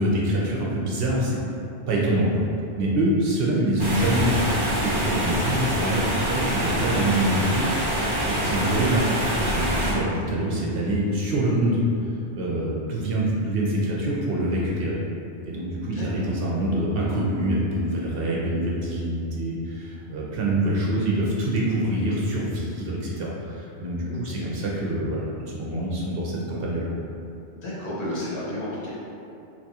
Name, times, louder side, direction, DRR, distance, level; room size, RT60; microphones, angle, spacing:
voice 1, 0.0-1.4 1.9-2.4 2.8-4.5 4.8-15.0 15.5-26.9, right 1 dB, 65° right, -4 dB, 0.7 m, -25 dB
sound 1, 3.8-9.9, equal, 30° right, 0.5 m, -25 dB
voice 2, 24.1-24.5 26.4-26.6 27.5-28.9, left 1 dB, 70° left, -7 dB, 1.1 m, -33 dB
3.4 x 2.8 x 2.8 m, 2.7 s
omnidirectional pair, 1.2 m